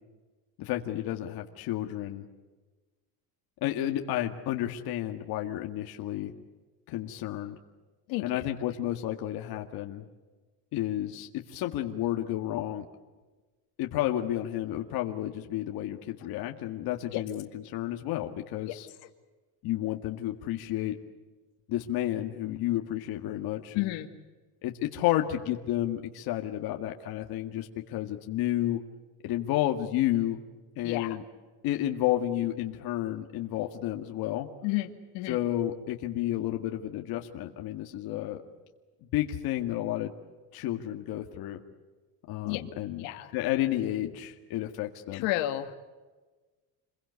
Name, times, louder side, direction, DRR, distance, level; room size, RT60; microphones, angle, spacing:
voice 1, 0.6-2.3 3.6-6.3 6.9-7.6 8.2-10.1 10.7-12.9 13.8-18.9 19.6-21.0 21.7-23.9 24.6-28.8 29.2-30.4 30.8-31.2 31.6-34.5 35.3-38.4 39.0-40.1 40.5-41.6 42.3-43.1 43.3-45.3, left 13 dB, 50° left, 3 dB, 2.0 m, -31 dB
voice 2, 8.1-8.5 17.1-17.2 18.7-18.8 23.7-24.1 30.8-31.2 34.6-35.4 42.5-42.6 43.0-43.3 45.1-45.8, left 16 dB, 75° left, 6 dB, 2.2 m, -31 dB
28.0 x 22.0 x 8.2 m, 1.3 s
cardioid pair, 165°, 45 cm